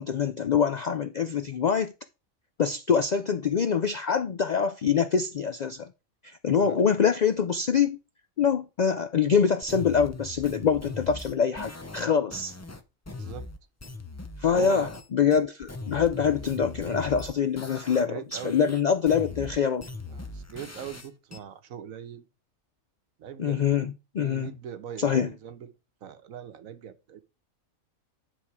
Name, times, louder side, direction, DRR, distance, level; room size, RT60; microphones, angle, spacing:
voice 1, 0.0-1.9 2.6-5.9 6.2-8.0 8.4-12.5 14.4-19.9 23.4-24.5 25.0-25.3, left 7 dB, 85° left, 0.3 m, -25 dB
sound 1, 9.6-15.1 15.3-18.1 18.3-21.4, left 3 dB, 20° left, 0.5 m, -40 dB
voice 2, 13.1-13.5 14.5-14.9 18.1-18.7 20.1-22.2 23.2-23.6 24.2-25.7 26.0-27.2, right 8 dB, 90° right, 1.3 m, -41 dB
10.0 x 3.6 x 4.7 m
omnidirectional pair, 1.4 m